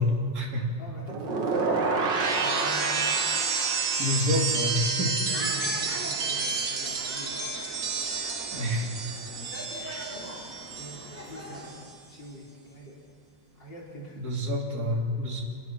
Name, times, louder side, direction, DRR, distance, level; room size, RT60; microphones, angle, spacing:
voice 1, 0.0-0.7 4.0-5.2 8.5-8.9 9.8-10.1 14.2-15.4, left 1 dB, 55° right, -1 dB, 3.5 m, -28 dB
voice 2, 0.8-3.0 5.0-7.6 8.2-8.3 10.0-13.0 13.5-14.2, equal, 80° left, -3 dB, 4.9 m, -45 dB
sound 1, 1.1-11.2 11.5-11.9, right 4 dB, 80° right, 2.6 m, -29 dB
sound 2, 5.3-11.7, equal, 5° right, 4.6 m, -41 dB
28.0 x 20.0 x 6.1 m, 2.1 s
omnidirectional pair, 1.9 m